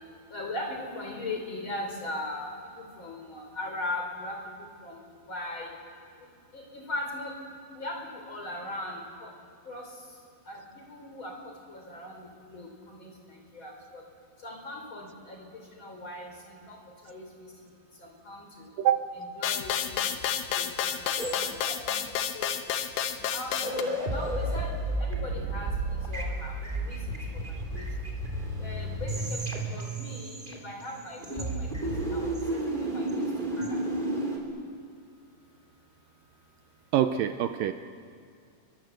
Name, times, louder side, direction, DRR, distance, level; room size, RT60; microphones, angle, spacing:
voice 1, 0.3-2.5 3.0-4.4 4.8-5.0 5.3-5.7 6.5-7.3 7.8-9.3 9.7-9.8 10.5-11.4 11.7-14.0 14.4-15.4 15.7-16.8 17.0-17.2 18.0-18.7 19.1-20.0 20.5-21.6 22.3-22.5 23.3-24.7 25.0-25.7 26.1-27.2 27.7-27.9 28.6-32.3 32.7-33.2 33.6-33.8, left 1 dB, 35° left, 2 dB, 4.2 m, -39 dB
sound 1, 19.4-23.8, left 9 dB, 80° left, 3.0 m, -30 dB
sound 2, 21.2-22.1 23.1-23.3 23.5-30.9 31.2-34.4, right 1 dB, 15° right, 2.8 m, -32 dB
voice 2, 36.9-37.7, right 11 dB, 75° right, 9 dB, 2.3 m, -25 dB
29.0 x 22.5 x 7.9 m, 2.2 s
omnidirectional pair, 4.3 m